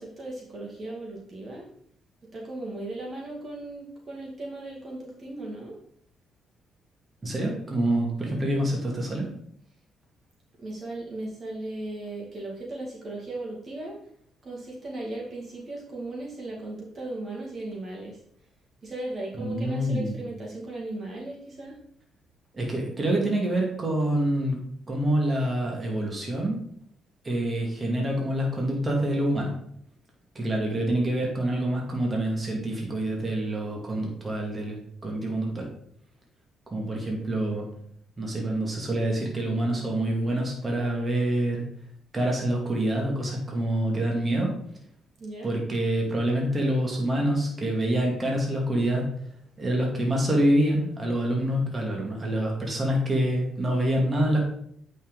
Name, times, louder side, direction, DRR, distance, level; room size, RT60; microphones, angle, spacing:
voice 1, 0.0-1.7 2.3-5.7 10.6-13.9 14.4-18.2 18.8-21.8 45.2-45.5, right 2 dB, 45° right, -2 dB, 2.2 m, -37 dB
voice 2, 7.2-9.3 19.4-20.2 22.5-24.6 24.9-26.6 27.2-29.6 30.3-35.7 36.7-37.7 38.2-41.6 42.1-44.6 45.4-49.1 49.6-54.4, right 1 dB, 30° right, -1 dB, 2.3 m, -26 dB
8.4 x 5.7 x 4.0 m, 0.66 s
cardioid pair, 90°, 0 cm